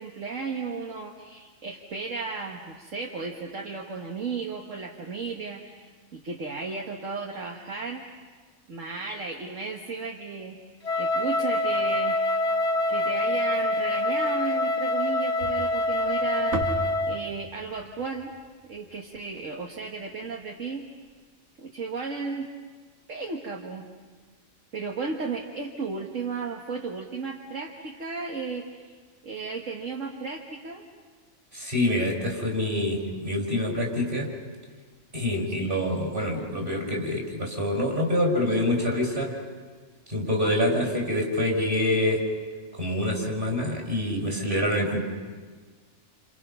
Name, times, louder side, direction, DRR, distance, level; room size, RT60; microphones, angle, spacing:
voice 1, 0.0-8.1 8.7-10.6 11.0-12.2 12.9-18.3 18.6-20.8 21.6-22.5 23.1-23.9 24.7-29.0 29.2-30.8, right 4 dB, 65° right, 1 dB, 1.9 m, -34 dB
Wind instrument woodwind instrument, 10.8-17.3, left 2 dB, 55° left, 1.5 m, -25 dB
sound 1, 15.4-19.7, right 1 dB, 90° right, 2.7 m, -37 dB
voice 2, 31.5-34.3 35.1-39.4 40.1-42.2 42.8-45.0, left 1 dB, 40° right, 0 dB, 5.9 m, -26 dB
29.5 x 29.5 x 5.7 m, 1.5 s
omnidirectional pair, 1.4 m